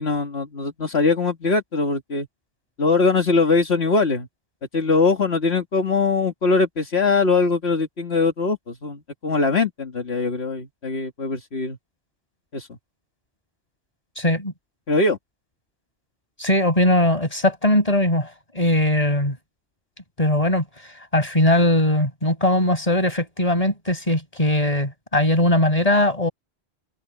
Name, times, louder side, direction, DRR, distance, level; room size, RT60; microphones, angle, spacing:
voice 1, 0.0-2.3 2.8-4.3 4.7-11.8 12.5-12.7 14.9-15.2, left 4 dB, 75° left, 2.2 m, -21 dB
voice 2, 14.2-14.5 16.4-19.4 20.2-20.6 21.1-26.3, left 1 dB, 35° left, 5.5 m, -20 dB
omnidirectional pair, 1.1 m